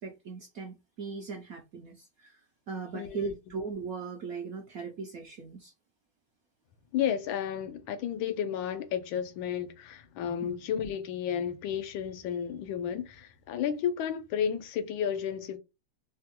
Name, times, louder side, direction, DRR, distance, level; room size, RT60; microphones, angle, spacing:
voice 1, 0.0-5.7 10.4-10.5, right 4 dB, 75° right, 0.8 m, -39 dB
voice 2, 2.9-3.3 6.9-15.6, left 8 dB, 90° left, 1.4 m, -32 dB
3.5 x 2.1 x 2.8 m
omnidirectional pair, 2.1 m